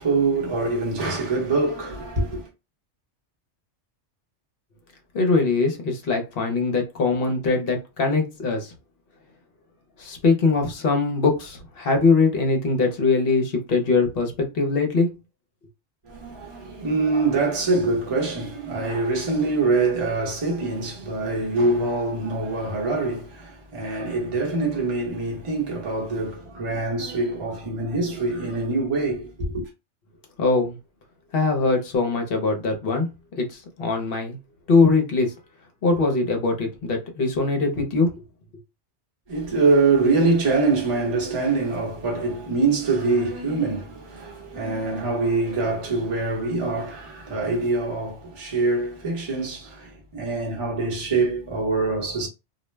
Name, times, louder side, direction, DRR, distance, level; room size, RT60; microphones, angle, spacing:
voice 1, 0.0-2.5 16.0-29.7 39.3-52.3, right 3 dB, 30° right, 0.8 m, -24 dB
voice 2, 5.1-8.7 10.0-15.1 30.4-30.8 31.3-33.1 33.4-34.4 34.7-35.3 35.8-38.1, left 3 dB, 55° left, 0.9 m, -22 dB
2.4 x 2.1 x 3.2 m
omnidirectional pair, 1.2 m